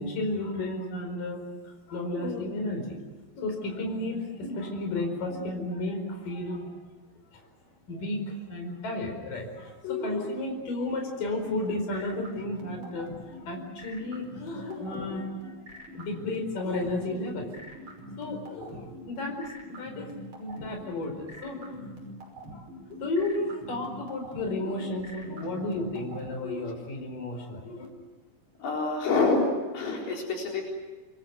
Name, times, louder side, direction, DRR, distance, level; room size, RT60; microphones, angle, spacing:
voice 1, 0.0-3.0 3.3-6.7 7.3-7.5 7.9-15.6 15.9-17.5 18.0-20.1 20.4-21.9 22.5-27.9, left 2 dB, 65° left, 3 dB, 6.3 m, -33 dB
sound 1, 11.4-26.3, right 1 dB, 35° right, 6.4 m, -44 dB
voice 2, 28.6-30.6, left 3 dB, 85° left, -1 dB, 6.1 m, -26 dB
28.0 x 23.0 x 8.1 m, 1.3 s
omnidirectional pair, 4.2 m